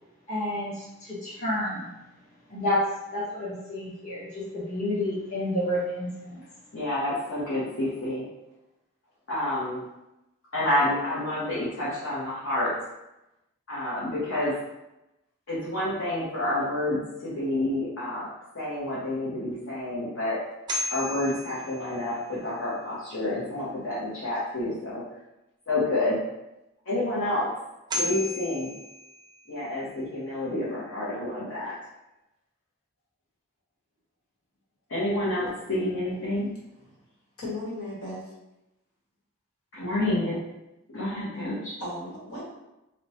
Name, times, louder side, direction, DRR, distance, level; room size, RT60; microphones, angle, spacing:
voice 1, 0.3-1.9 2.5-2.8 3.1-6.4, left 1 dB, 35° left, -9 dB, 1.1 m, -30 dB
voice 2, 6.7-8.3 9.3-9.8 10.5-12.8 13.7-14.6 15.5-18.3 18.5-20.4 20.9-25.0 25.7-26.2 26.9-27.5 27.9-28.7 29.5-31.8 34.9-36.5 39.7-40.4 40.9-41.7, left 1 dB, 65° left, -9 dB, 0.9 m, -29 dB
sound 1, 20.5-22.6 27.5-27.6 27.9-29.8, left 1 dB, 20° right, 0.3 m, -34 dB
voice 3, 37.4-38.2 41.8-42.4, left 1 dB, 85° left, -5 dB, 1.3 m, -36 dB
3.0 x 2.2 x 4.1 m, 0.94 s
head